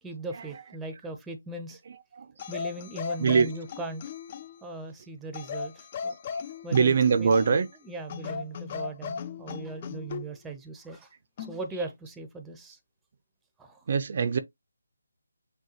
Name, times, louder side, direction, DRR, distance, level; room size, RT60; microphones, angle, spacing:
voice 1, 0.0-1.8 2.5-4.0 4.6-6.2 6.6-7.3 7.8-11.1 11.5-12.8 13.6-13.8, right 2 dB, 5° right, 0.6 m, -39 dB
voice 2, 2.1-2.4 3.2-3.5 6.3-6.4 6.7-7.7 13.9-14.4, right 6 dB, 45° right, 0.4 m, -23 dB
sound 1, 2.4-4.6 5.3-7.7 8.1-10.3 11.4-11.6, left 6 dB, 30° left, 0.4 m, -37 dB
6.3 x 2.3 x 2.9 m
figure-of-eight pair, 160°, 0 cm